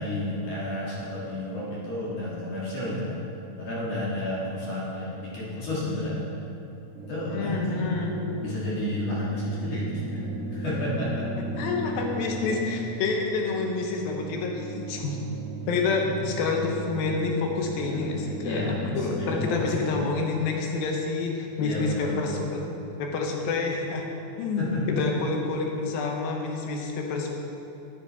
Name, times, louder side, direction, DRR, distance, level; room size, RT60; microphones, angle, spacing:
voice 1, 0.0-3.2 3.6-6.3 7.1-7.6 8.4-11.2 18.4-20.1 21.6-22.7 24.6-25.0, left 1 dB, 50° left, -7 dB, 2.3 m, -31 dB
sound 1, 6.9-19.5, right 2 dB, 65° right, 2.9 m, -36 dB
voice 2, 7.3-8.2 11.5-15.2 15.7-22.6 23.0-24.1 24.4-27.4, left 4 dB, 75° left, 1 dB, 2.7 m, -28 dB
10.5 x 9.8 x 4.1 m, 2.8 s
omnidirectional pair, 4.5 m